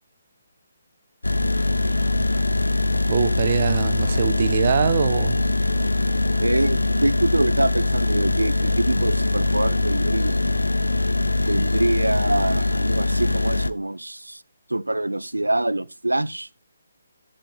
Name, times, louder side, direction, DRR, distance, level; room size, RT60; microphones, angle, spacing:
sound 1, 1.2-13.7, left 2 dB, 80° left, 0.7 m, -22 dB
Livestock farm animals working animals, 1.4-6.4, left 2 dB, 20° left, 5.8 m, -48 dB
voice 1, 3.1-5.4, right 7 dB, 40° right, 1.0 m, -23 dB
voice 2, 6.4-10.4 11.5-14.4 14.7-16.5, right 1 dB, 80° right, 0.6 m, -25 dB
14.0 x 7.8 x 3.6 m
figure-of-eight pair, 140°, 0 cm